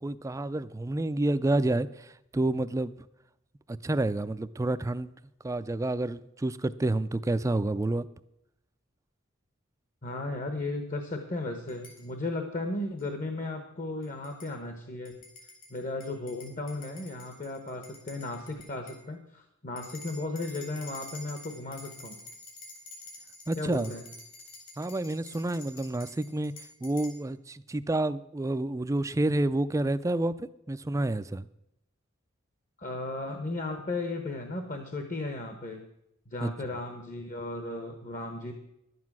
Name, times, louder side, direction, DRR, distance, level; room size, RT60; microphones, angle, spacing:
voice 1, 0.0-2.9 3.7-5.1 5.4-8.1 23.5-23.9 24.8-31.5 36.4-36.7, right 2 dB, 15° right, 14 dB, 0.3 m, -29 dB
voice 2, 10.0-15.2 15.7-22.2 23.5-24.0 32.8-35.8 36.3-38.5, left 2 dB, 40° left, 6 dB, 1.0 m, -35 dB
sound 1, 11.7-12.0 13.0-13.1 14.0-14.5 15.1-19.0 19.8-27.2, left 2 dB, 70° left, 4.1 m, -48 dB
11.5 x 9.5 x 6.1 m, 0.82 s
head